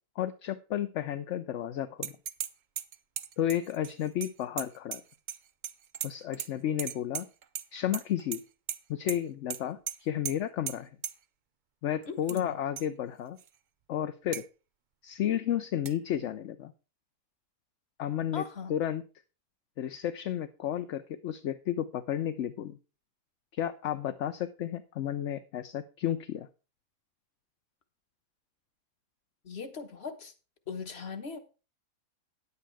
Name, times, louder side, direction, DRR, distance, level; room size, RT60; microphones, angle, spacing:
voice 1, 0.2-2.1 3.4-5.0 6.0-7.3 7.7-8.4 8.9-10.9 11.8-13.4 13.9-14.4 15.0-16.7 18.0-18.4 18.7-19.0 19.8-22.8 23.5-26.5, left 10 dB, 60° left, 0.9 m, -32 dB
sound 1, 2.0-2.5 2.8-5.4 5.6-6.5 6.8-7.6 7.9-8.4 8.7-8.8 9.1-9.2 9.5-9.6 9.9-10.0 10.2-10.3 10.7-10.8 11.0-11.1 12.0-12.4 12.8-12.9 13.4-13.5 14.3-14.4 15.8-15.9, right 9 dB, 55° right, 0.5 m, -36 dB
voice 2, 12.1-12.5 18.3-18.8 29.4-30.3 30.7-31.4, left 5 dB, 45° left, 1.4 m, -39 dB
10.0 x 8.4 x 4.7 m
omnidirectional pair, 1.5 m